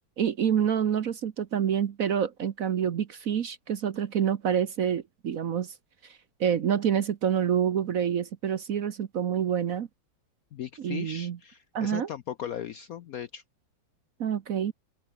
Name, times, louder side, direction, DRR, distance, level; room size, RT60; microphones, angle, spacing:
voice 1, 0.2-5.7 6.0-9.9 10.8-11.4 11.7-12.1 14.2-14.7, right 8 dB, 55° right, 1.1 m, -27 dB
voice 2, 10.5-13.4, left 9 dB, 65° left, 0.9 m, -38 dB
open air
omnidirectional pair, 2.1 m